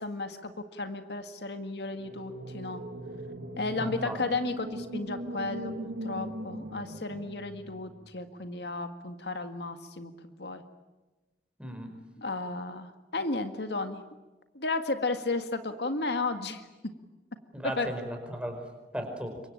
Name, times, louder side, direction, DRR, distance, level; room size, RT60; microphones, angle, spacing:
voice 1, 0.0-2.8 3.6-10.6 12.2-14.0 14.5-16.7 17.8-17.9, left 3 dB, 75° left, 8 dB, 1.8 m, -34 dB
sound 1, 2.0-8.1, right 1 dB, 75° right, 2.2 m, -40 dB
voice 2, 3.8-4.2 11.6-11.9 17.5-18.6 18.9-19.4, equal, 5° right, 4 dB, 5.0 m, -36 dB
27.5 x 24.0 x 8.8 m, 1.1 s
head